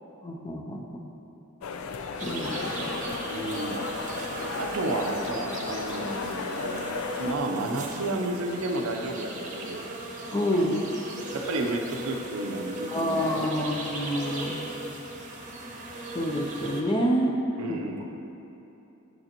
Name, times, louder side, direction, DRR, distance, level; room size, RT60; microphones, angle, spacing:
voice 1, 0.2-1.1 2.2-2.9 10.3-10.8 12.9-14.6 16.1-17.4 17.7-17.8, equal, 25° left, 0 dB, 0.5 m, -28 dB
sound 1, 1.6-7.3, left 5 dB, 85° left, 0.4 m, -35 dB
sound 2, 2.2-16.8, right 2 dB, 35° right, 0.8 m, -37 dB
voice 2, 3.3-3.9 4.3-6.8 7.2-9.9 11.3-13.4 17.6-18.1, right 2 dB, 85° right, 3 dB, 0.6 m, -32 dB
9.2 x 6.8 x 2.9 m, 2.9 s
head